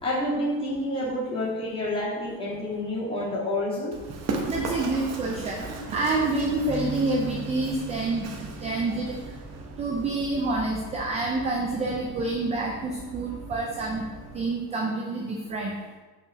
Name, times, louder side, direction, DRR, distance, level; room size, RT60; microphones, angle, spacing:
voice 1, 0.0-3.9, left 1 dB, 10° left, -9 dB, 2.6 m, -28 dB
Run, 3.9-14.4, right 3 dB, 35° right, 0.9 m, -38 dB
voice 2, 4.5-9.2 9.8-14.1 14.3-15.7, right 2 dB, 15° right, 0 dB, 0.3 m, -28 dB
sound 1, 6.7-10.9 11.4-11.6 12.5-12.9, right 1 dB, 85° right, 2.5 m, -42 dB
6.0 x 4.8 x 5.8 m, 1.3 s
cardioid pair, 160°, 48 cm